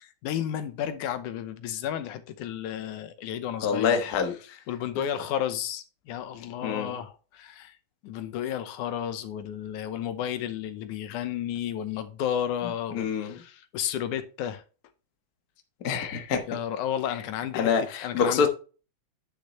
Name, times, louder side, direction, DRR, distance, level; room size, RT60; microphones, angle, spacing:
voice 1, 0.0-4.0 4.7-7.8 8.0-14.6 16.5-17.7 18.0-18.5, left 10 dB, 90° left, 2.4 m, -32 dB
voice 2, 3.6-4.6 6.6-7.0 12.9-13.4 15.8-16.4 17.5-18.5, left 6 dB, 50° left, 1.1 m, -26 dB
10.0 x 6.6 x 3.2 m
omnidirectional pair, 3.4 m